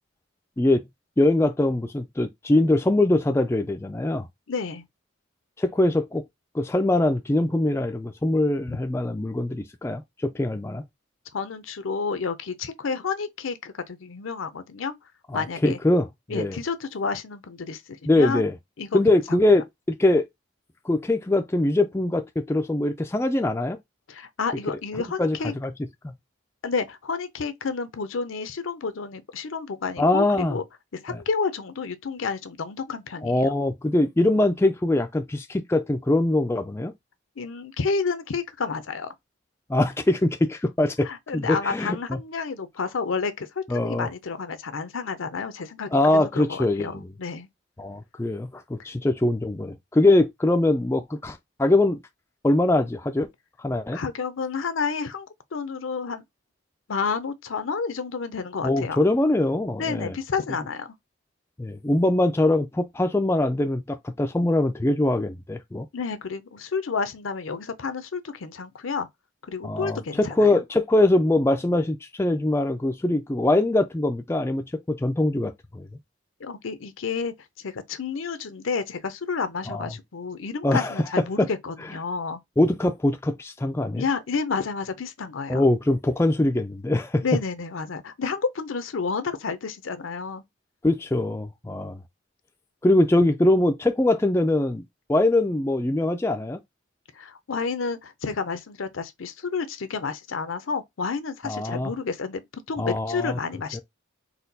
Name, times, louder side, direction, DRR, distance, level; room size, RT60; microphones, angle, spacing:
voice 1, 1.2-4.3 5.6-6.2 6.5-10.8 15.3-16.6 18.1-18.5 18.9-20.2 20.8-23.8 24.7-24.8 25.2-25.7 26.0-26.1 30.0-30.6 31.1-31.2 33.2-36.9 39.7-42.2 43.7-44.1 45.9-47.1 47.8-52.0 52.4-53.3 53.6-54.0 58.6-60.1 61.6-65.9 69.6-75.9 79.7-79.9 80.6-80.9 81.4-81.5 82.6-84.0 85.5-87.2 90.8-92.0 92.8-94.8 95.1-96.6 101.4-101.9 102.8-103.4 103.7-103.8, left 2 dB, 15° left, 0.3 m, -23 dB
voice 2, 4.5-4.8 11.3-14.9 15.3-15.8 16.3-18.4 18.8-19.0 19.5-19.6 24.1-25.5 26.6-30.6 30.9-33.5 37.4-39.1 41.0-47.5 53.9-56.2 56.9-59.0 59.8-60.9 65.9-69.1 69.4-70.6 76.4-82.4 84.0-85.6 87.2-90.4 97.2-103.8, left 5 dB, 80° left, 0.6 m, -30 dB
4.2 x 2.3 x 4.0 m
head